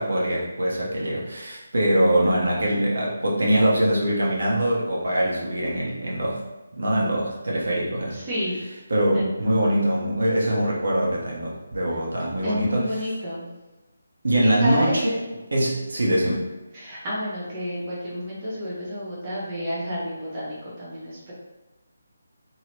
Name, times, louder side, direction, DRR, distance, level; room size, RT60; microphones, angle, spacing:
voice 1, 0.0-6.4 6.7-8.2 8.9-12.9 14.2-15.2 15.5-16.4, right 1 dB, 75° right, -4 dB, 1.0 m, -23 dB
voice 2, 8.1-8.7 9.1-9.3 12.4-13.5 14.4-15.0 16.7-21.3, equal, 25° right, -8 dB, 1.0 m, -30 dB
3.0 x 2.8 x 2.9 m, 1.1 s
figure-of-eight pair, 170°, 0 cm